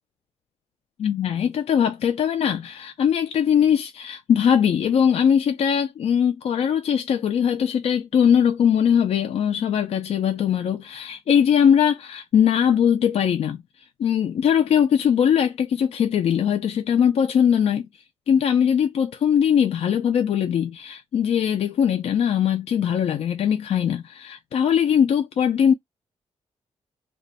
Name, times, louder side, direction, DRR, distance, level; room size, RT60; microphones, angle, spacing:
voice 1, 1.0-13.6 14.0-17.9 18.3-25.7, left 8 dB, 65° left, 0.4 m, -21 dB
2.5 x 2.2 x 3.9 m
wide cardioid pair, 140°, 11 cm